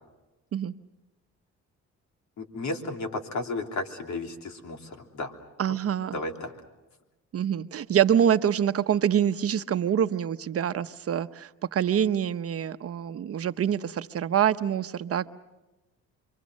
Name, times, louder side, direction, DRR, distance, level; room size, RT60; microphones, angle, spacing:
voice 1, 2.4-5.4 5.7-5.8 6.1-6.5, left 2 dB, 70° left, 4 dB, 3.3 m, -33 dB
voice 2, 5.6-6.2 7.3-15.3, right 9 dB, 50° right, 11 dB, 0.9 m, -25 dB
28.0 x 24.0 x 6.3 m, 1.1 s
cardioid pair, 90°, 30 cm